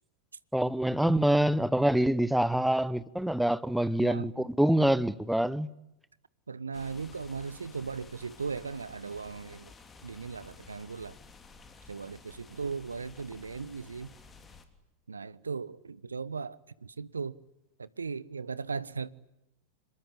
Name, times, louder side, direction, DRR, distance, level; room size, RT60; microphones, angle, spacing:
voice 1, 0.5-5.7, right 1 dB, ahead, 1.0 m, -26 dB
voice 2, 4.0-4.5 6.5-9.7 10.0-11.2 11.9-14.1 15.1-17.4 17.8-19.1, right 5 dB, 75° right, 0.9 m, -38 dB
sound 1, 6.7-14.6, left 4 dB, 20° left, 3.4 m, -53 dB
26.5 x 22.0 x 10.0 m
figure-of-eight pair, 90°, 0 cm